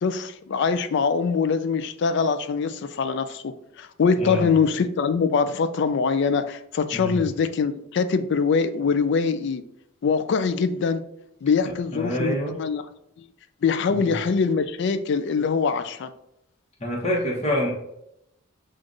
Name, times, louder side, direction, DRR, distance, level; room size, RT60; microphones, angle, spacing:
voice 1, 0.0-9.6 10.0-11.0 11.4-12.8 13.6-16.1, left 5 dB, 55° left, 11 dB, 0.3 m, -23 dB
voice 2, 11.6-12.5 13.9-14.1 16.8-17.7, equal, 35° left, -3 dB, 1.0 m, -27 dB
7.4 x 2.5 x 2.5 m, 0.81 s
head